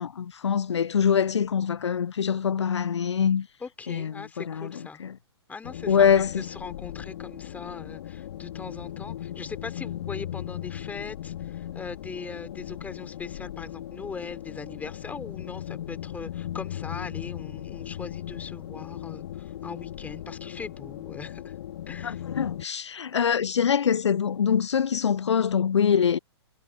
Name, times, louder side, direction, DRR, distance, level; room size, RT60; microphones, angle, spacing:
voice 1, 0.0-3.5 3.9-5.1 5.9-6.5 22.0-26.2, left 7 dB, 85° left, 0.4 m, -24 dB
voice 2, 3.6-5.0 5.5-21.5 21.9-22.2, left 5 dB, 10° left, 3.6 m, -40 dB
sound 1, 5.6-22.6, left 11 dB, 60° left, 3.0 m, -38 dB
hypercardioid pair, 120°, 14 cm